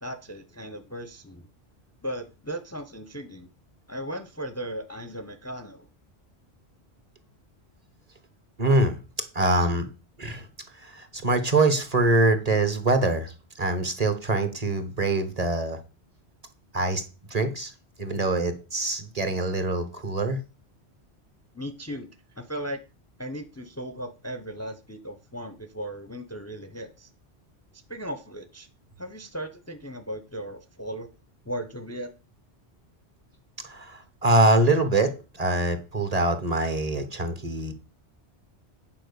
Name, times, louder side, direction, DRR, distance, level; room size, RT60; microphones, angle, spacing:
voice 1, 0.0-1.5 2.0-3.5 3.9-5.9 21.5-22.1 22.4-22.8 23.2-27.1 27.9-28.7 29.0-31.1 31.5-32.1, right 1 dB, 15° left, 0.7 m, -36 dB
voice 2, 8.6-9.0 9.3-9.9 10.2-10.4 10.8-15.8 16.7-17.0 17.3-17.7 18.0-20.4 33.6-37.7, right 2 dB, 35° right, 1.2 m, -24 dB
9.1 x 4.4 x 6.8 m
omnidirectional pair, 1.1 m